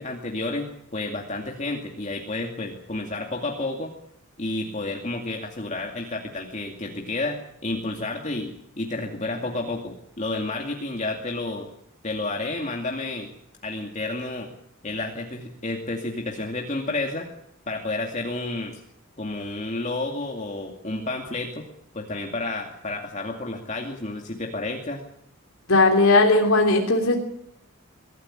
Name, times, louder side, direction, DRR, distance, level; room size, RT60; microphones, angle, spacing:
voice 1, 0.0-3.9 4.4-11.7 12.0-13.3 13.6-14.5 14.8-17.3 17.7-18.8 19.2-21.6 21.9-25.0, left 2 dB, 35° left, 1 dB, 2.4 m, -30 dB
voice 2, 25.7-27.2, left 2 dB, 80° left, 2 dB, 3.2 m, -18 dB
23.0 x 14.0 x 10.0 m, 0.72 s
head